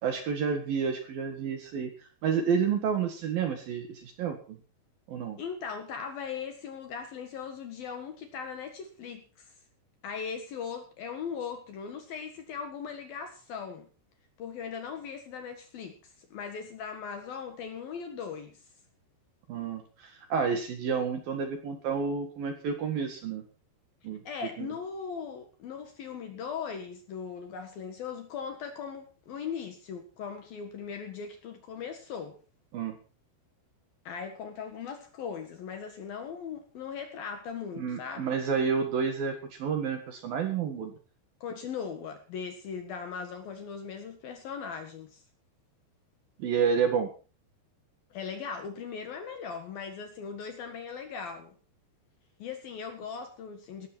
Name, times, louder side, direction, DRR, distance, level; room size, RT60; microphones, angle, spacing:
voice 1, 0.0-1.9 2.2-4.6 5.1-5.4 19.5-23.4 24.0-24.2 24.6-24.7 32.7-32.9 37.8-40.9 46.4-47.1, right 6 dB, 55° right, 6 dB, 3.0 m, -30 dB
voice 2, 5.4-9.5 10.0-13.9 14.4-18.6 24.2-32.4 34.0-38.3 41.4-45.2 48.1-51.5 52.4-53.9, left 6 dB, 60° left, 6 dB, 2.8 m, -39 dB
17.5 x 13.5 x 4.4 m, 0.36 s
omnidirectional pair, 5.8 m